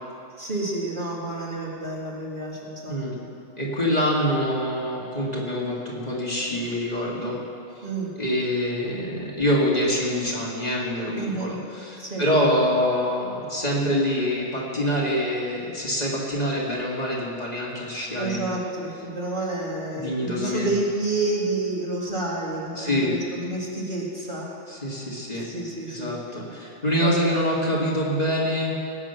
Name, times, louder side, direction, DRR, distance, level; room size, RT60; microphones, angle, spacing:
voice 1, 0.4-3.3 7.8-8.1 11.1-11.5 12.0-12.2 18.1-24.5 25.4-26.2 27.0-27.1, right 2 dB, 45° right, -4 dB, 2.4 m, -29 dB
voice 2, 3.6-7.4 7.8-7.9 8.2-18.5 19.9-20.7 22.8-23.1 24.7-25.4 25.9-28.7, equal, 35° left, -5 dB, 2.7 m, -25 dB
19.5 x 8.9 x 6.0 m, 2.7 s
omnidirectional pair, 1.2 m